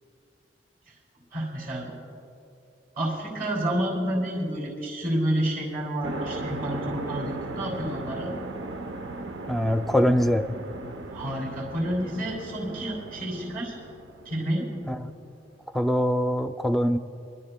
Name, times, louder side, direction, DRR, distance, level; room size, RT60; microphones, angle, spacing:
voice 1, 1.3-1.9 3.0-8.3 11.1-13.8 14.2-14.7, right 1 dB, 55° right, -5 dB, 2.9 m, -29 dB
sound 1, 6.0-15.1, right 2 dB, 85° right, 0.7 m, -37 dB
voice 2, 9.5-10.4 14.9-15.0 15.7-17.0, equal, ahead, 7 dB, 0.4 m, -23 dB
26.5 x 12.0 x 2.2 m, 2.6 s
head